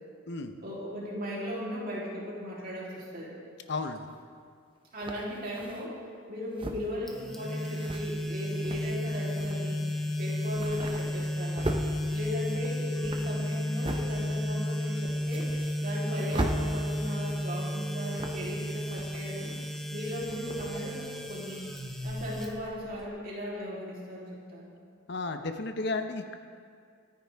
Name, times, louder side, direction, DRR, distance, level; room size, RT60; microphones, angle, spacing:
voice 1, 0.6-3.3 4.9-6.0 6.3-9.8 10.2-11.7 12.1-15.5 15.8-19.5 19.9-21.6 22.0-24.7, equal, 45° right, -6 dB, 3.3 m, -37 dB
voice 2, 3.7-4.0 25.1-26.3, left 3 dB, 55° left, 7 dB, 0.8 m, -33 dB
sound 1, 4.1-4.2 5.0-5.9 6.5-7.0 7.6-8.0 8.5-9.0 9.4-9.6 9.9-10.1 10.3-11.9 12.4-14.1 14.5-14.6 15.0-16.0 16.3-16.6 17.1-17.6 18.1-18.5 18.8-19.8 20.1-20.8, right 1 dB, 25° right, 0.8 m, -38 dB
sound 2, 7.1-23.0, left 1 dB, ahead, 0.9 m, -33 dB
24.0 x 9.7 x 3.5 m, 2.1 s
head